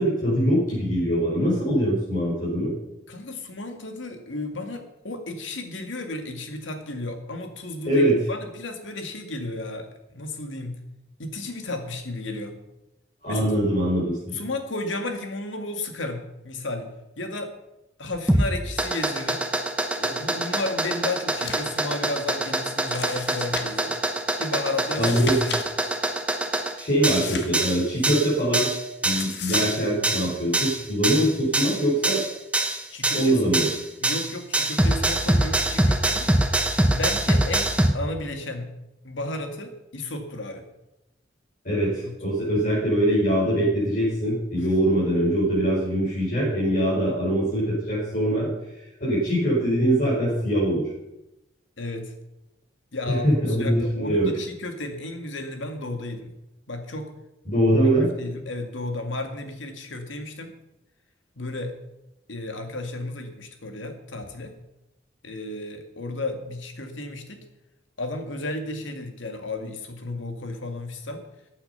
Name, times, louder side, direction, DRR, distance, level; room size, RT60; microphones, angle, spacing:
voice 1, 0.0-2.7 7.9-8.2 13.2-14.4 25.0-25.4 26.8-28.7 29.0-32.3 33.1-33.7 41.6-48.5 49.0-50.9 53.1-54.3 57.5-58.1, right 1 dB, 45° left, -7 dB, 5.3 m, -23 dB
voice 2, 3.1-10.8 11.2-12.6 13.3-13.5 14.3-16.9 17.2-17.5 18.0-19.4 20.0-24.0 24.4-25.6 32.9-33.6 34.0-36.3 36.9-38.7 39.0-40.6 42.0-42.1 44.5-44.7 46.4-46.5 51.8-52.1 52.9-56.3 56.7-57.1 58.0-60.5 61.4-61.7 62.3-64.5 65.2-67.4 68.0-71.2, left 2 dB, 90° left, 5 dB, 2.2 m, -33 dB
sound 1, 18.1-37.9, right 1 dB, 5° right, 1.0 m, -24 dB
sound 2, 21.3-21.8 22.1-22.2 22.9-23.9 24.9-25.6 25.9-26.0 27.0-28.1 29.2-29.8, left 5 dB, 60° left, 1.6 m, -36 dB
15.0 x 8.8 x 5.7 m, 0.93 s
head